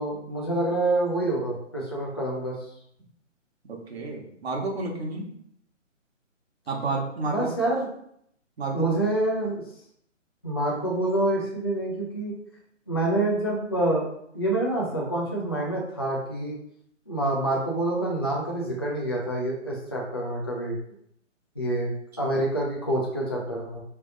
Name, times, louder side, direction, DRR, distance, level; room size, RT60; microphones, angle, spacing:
voice 1, 0.0-2.5 7.3-7.9 8.7-9.6 10.4-12.3 12.9-16.5 17.1-20.8 21.6-21.9 22.2-23.8, right 1 dB, 20° left, -4 dB, 0.4 m, -27 dB
voice 2, 3.7-5.3 6.7-7.5 8.6-8.9 22.2-22.3, right 3 dB, 55° right, 1 dB, 1.1 m, -31 dB
4.0 x 3.3 x 3.8 m, 0.71 s
hypercardioid pair, 160°, 38 cm